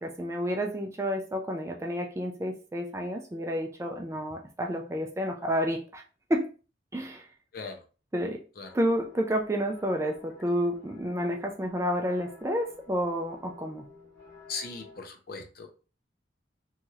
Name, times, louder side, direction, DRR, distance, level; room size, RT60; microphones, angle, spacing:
voice 1, 0.0-6.0 6.3-6.5 6.9-7.3 8.1-8.4 8.7-13.9, equal, 15° right, 3 dB, 0.3 m, -30 dB
voice 2, 7.5-7.8 8.6-8.7 14.5-15.7, left 4 dB, 50° left, 5 dB, 0.5 m, -39 dB
sound 1, 8.6-15.0, left 3 dB, 15° left, 1.5 m, -52 dB
3.0 x 2.7 x 2.4 m, 0.35 s
head